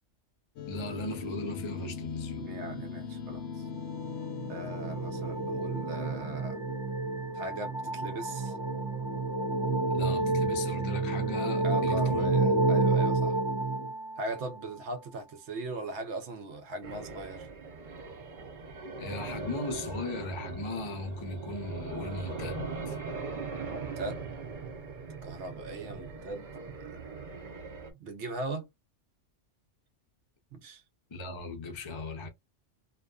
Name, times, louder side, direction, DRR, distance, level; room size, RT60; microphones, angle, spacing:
sound 1, 0.6-7.2, left 6 dB, 70° left, 0.8 m, -41 dB
voice 1, 0.7-2.5 9.9-12.6 19.0-23.0 31.1-32.3, left 2 dB, 40° left, 0.4 m, -38 dB
voice 2, 2.4-3.7 4.5-6.6 7.3-8.6 11.6-13.4 14.2-17.5 23.7-24.3 25.2-26.5 26.8-27.0 28.0-28.7 30.5-30.8, right 2 dB, 70° right, 0.9 m, -39 dB
sound 2, 3.8-14.5, right 3 dB, 20° left, 0.8 m, -29 dB
sound 3, 16.8-27.9, right 4 dB, 50° right, 0.6 m, -40 dB
2.5 x 2.3 x 2.2 m
omnidirectional pair, 1.3 m